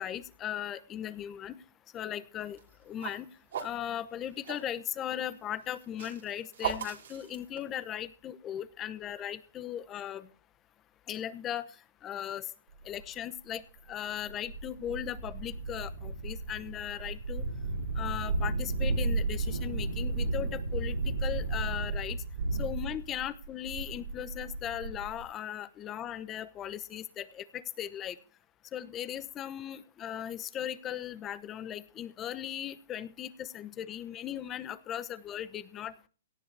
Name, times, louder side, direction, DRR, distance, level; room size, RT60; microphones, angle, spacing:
voice 1, 0.0-1.6 1.9-2.6 2.9-3.3 3.6-10.3 11.1-11.6 12.0-12.5 12.8-13.6 13.9-17.4 18.0-22.2 22.6-28.2 28.7-36.1, left 10 dB, 20° left, 14 dB, 0.9 m, -38 dB
Woosh Fleuret Escrime B, 2.5-4.7 5.6-8.0, right 8 dB, 70° right, 3.3 m, -38 dB
sound 1, 13.0-13.1 13.8-13.9 14.2-25.2, right 3 dB, 85° right, 5.0 m, -33 dB
17.5 x 13.0 x 3.4 m, 0.39 s
hypercardioid pair, 155°, 0 cm